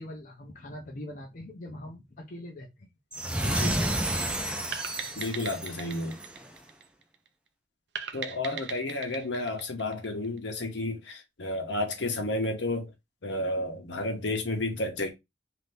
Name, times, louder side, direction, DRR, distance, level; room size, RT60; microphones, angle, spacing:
voice 1, 0.0-2.9, left 1 dB, 50° left, 0.6 m, -42 dB
sound 1, 3.1-6.4, right 1 dB, 5° right, 0.4 m, -31 dB
voice 2, 3.4-3.9 5.1-6.2 8.1-12.9 13.2-15.1, left 2 dB, 75° left, 0.8 m, -31 dB
sound 2, 4.7-7.3 8.0-10.5, right 7 dB, 65° right, 0.5 m, -39 dB
2.7 x 2.6 x 3.3 m
head